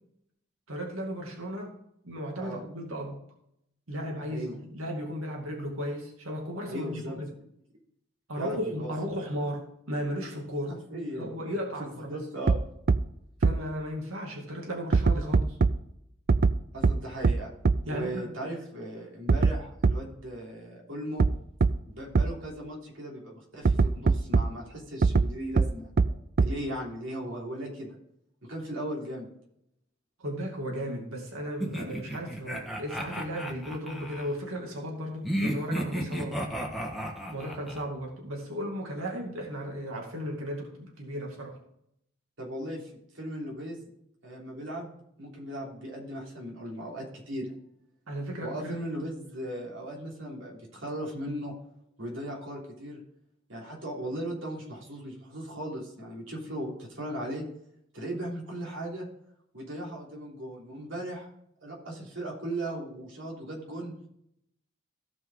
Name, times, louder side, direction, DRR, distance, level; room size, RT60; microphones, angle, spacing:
voice 1, 0.7-1.7 2.0-3.2 3.9-7.3 8.3-10.7 11.2-12.2 13.4-15.6 17.8-18.3 30.2-36.5 37.3-41.5 48.1-48.8, equal, 90° right, 0 dB, 2.4 m, -35 dB
voice 2, 6.7-7.2 8.4-8.9 10.7-11.4 11.8-12.6 16.7-17.5 17.9-21.3 21.8-25.9 26.4-28.0 28.4-29.3 42.4-43.8 44.2-47.5 48.4-51.5 52.0-53.0 53.5-57.4 57.9-59.1 59.5-61.3 61.6-63.9, right 1 dB, 65° right, -2 dB, 3.3 m, -37 dB
sound 1, 12.5-12.6 12.9-13.0 13.4-13.5 14.9-15.7 16.3-16.5 16.8-16.9 17.2-17.3 17.7-17.8 19.3-19.5 19.8-19.9 21.2-21.3 21.6-21.7 22.2-22.3 23.7-24.4 25.0-25.3 25.6-25.7 26.0-26.1 26.4-26.5, right 4 dB, 45° right, 0.4 m, -20 dB
sound 2, 31.6-34.3 35.2-37.8, equal, ahead, 1.3 m, -33 dB
16.0 x 5.5 x 3.8 m, 0.75 s
head